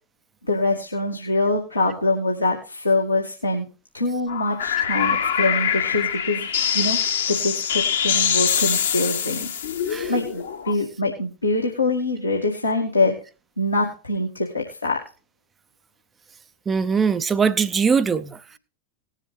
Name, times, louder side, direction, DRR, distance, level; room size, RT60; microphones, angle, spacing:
voice 1, 0.5-3.7 3.9-6.5 6.7-7.0 7.3-9.5 10.1-13.2 13.6-15.0, left 2 dB, 85° left, 2.2 m, -24 dB
sound 1, 4.3-10.7, left 8 dB, 65° left, 1.4 m, -24 dB
voice 2, 16.7-18.6, right 6 dB, 20° right, 0.6 m, -21 dB
19.5 x 7.3 x 3.3 m
figure-of-eight pair, 90°, 0 cm